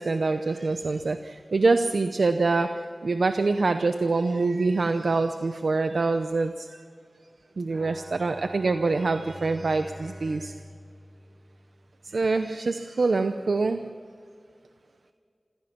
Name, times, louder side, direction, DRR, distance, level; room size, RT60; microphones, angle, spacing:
voice 1, 0.0-6.7 7.6-10.5 12.1-13.9, right 3 dB, 85° right, 8 dB, 0.7 m, -25 dB
Bowed string instrument, 7.7-12.1, right 1 dB, 35° right, 1.8 m, -45 dB
27.0 x 16.0 x 5.9 m, 2.3 s
wide cardioid pair, 75°, 0 cm